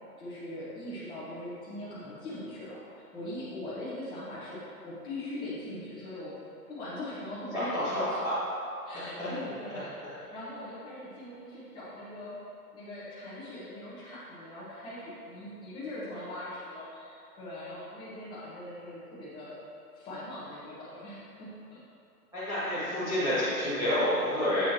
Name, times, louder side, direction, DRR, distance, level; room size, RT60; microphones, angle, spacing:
voice 1, 0.2-6.3 6.7-8.2 8.8-12.4 12.7-19.5 19.9-21.8, left 1 dB, 10° left, -9 dB, 1.3 m, -41 dB
voice 2, 7.5-8.3 9.2-9.3 22.3-24.6, left 1 dB, 5° right, -17 dB, 1.4 m, -29 dB
7.9 x 6.1 x 2.9 m, 2.7 s
figure-of-eight pair, 140°, 47 cm